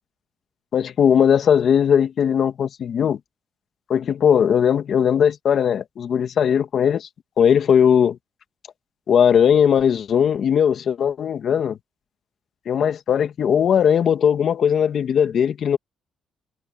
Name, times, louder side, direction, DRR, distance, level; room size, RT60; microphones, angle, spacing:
voice 1, 0.7-3.2 3.9-7.1 7.4-8.2 9.1-11.8 12.7-15.8, left 8 dB, 60° left, 2.1 m, -18 dB
cardioid pair, 90°, 0 cm